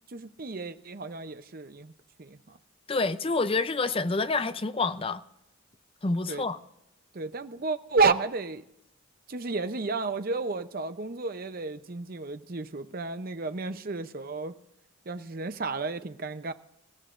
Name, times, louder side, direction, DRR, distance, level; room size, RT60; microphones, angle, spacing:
voice 1, 0.0-1.9 2.2-2.6 6.3-6.5 7.1-8.6 9.3-14.6 15.1-16.5, right 4 dB, 45° right, 0.7 m, -31 dB
voice 2, 2.9-5.2 6.0-6.6, left 3 dB, 25° left, 0.5 m, -27 dB
25.5 x 15.0 x 2.5 m
head